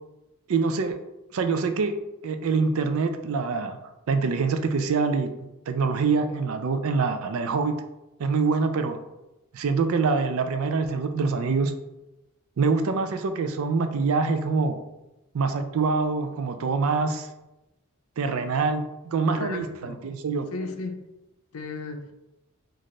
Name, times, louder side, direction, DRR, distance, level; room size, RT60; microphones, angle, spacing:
voice 1, 0.5-0.9 1.3-1.9 2.2-3.8 4.1-5.3 5.7-7.8 8.2-9.0 9.5-11.7 12.6-14.8 15.3-17.3 18.2-20.5, right 4 dB, 70° right, 8 dB, 0.4 m, -25 dB
voice 2, 19.3-20.0 20.5-21.1 21.5-22.1, left 3 dB, 80° left, 5 dB, 0.5 m, -35 dB
4.1 x 2.5 x 3.1 m, 0.96 s
head